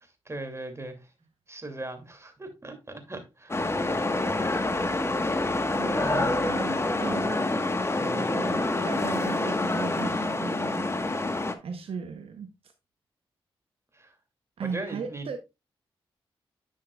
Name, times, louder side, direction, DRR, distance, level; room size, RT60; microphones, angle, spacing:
voice 1, 0.3-1.1 1.5-3.6 5.9-6.8 8.0-8.4 13.9-14.1 14.7-15.4, right 2 dB, 25° right, 2.4 m, -39 dB
sound 1, 3.5-11.5, left 2 dB, 25° left, 1.2 m, -27 dB
voice 2, 5.8-7.4 8.1-10.9 11.6-12.5 14.6-15.4, right 6 dB, 75° right, 0.8 m, -37 dB
10.0 x 6.4 x 2.3 m
cardioid pair, 55°, 10 cm